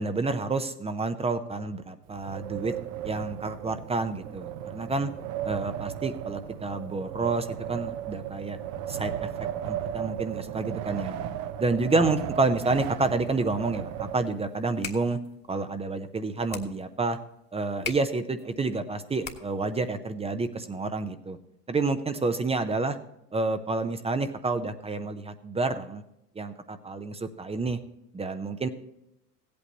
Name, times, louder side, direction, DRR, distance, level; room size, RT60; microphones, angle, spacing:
voice 1, 0.0-2.7 3.0-5.1 5.4-8.6 8.9-9.3 9.6-11.1 11.6-15.2 15.5-17.2 17.5-21.4 21.7-23.0 23.3-26.0 26.4-27.8 28.1-28.7, right 3 dB, 15° right, 9 dB, 0.7 m, -29 dB
Wind, 2.1-14.7, right 10 dB, 45° right, 0.9 m, -36 dB
sound 1, 14.5-19.8, left 5 dB, 20° left, 1.4 m, -42 dB
17.0 x 8.5 x 2.9 m, 0.83 s
figure-of-eight pair, 80°, 47 cm